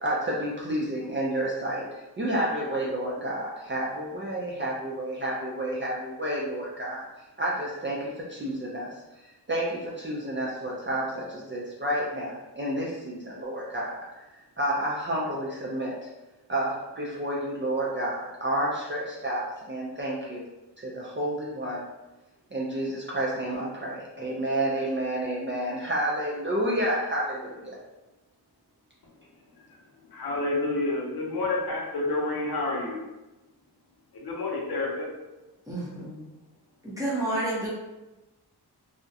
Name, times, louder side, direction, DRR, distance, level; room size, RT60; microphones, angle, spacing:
voice 1, 0.0-1.8 2.2-7.1 7.4-8.9 9.5-14.2 14.6-16.1 16.5-20.4 20.8-21.8 22.5-27.8, right 1 dB, 30° right, -5 dB, 0.4 m, -30 dB
voice 2, 30.1-33.0 34.1-35.1, left 2 dB, 65° left, -3 dB, 0.6 m, -29 dB
voice 3, 35.7-36.2 36.8-37.7, right 1 dB, 10° right, -7 dB, 0.7 m, -30 dB
2.3 x 2.0 x 2.7 m, 1.0 s
wide cardioid pair, 115°, 41 cm